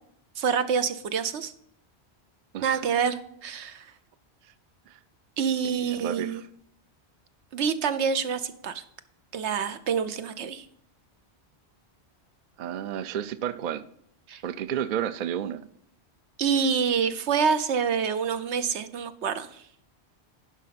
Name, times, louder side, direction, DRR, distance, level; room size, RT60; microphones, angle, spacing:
voice 1, 0.4-1.5 2.6-3.8 5.4-6.4 7.5-8.8 9.3-10.6 14.3-14.4 16.4-19.5, right 6 dB, 85° right, 11 dB, 1.1 m, -27 dB
voice 2, 5.6-6.4 12.6-13.8 14.4-15.7, right 9 dB, 55° right, 15 dB, 0.6 m, -32 dB
11.0 x 5.2 x 5.8 m, 0.69 s
omnidirectional pair, 1.1 m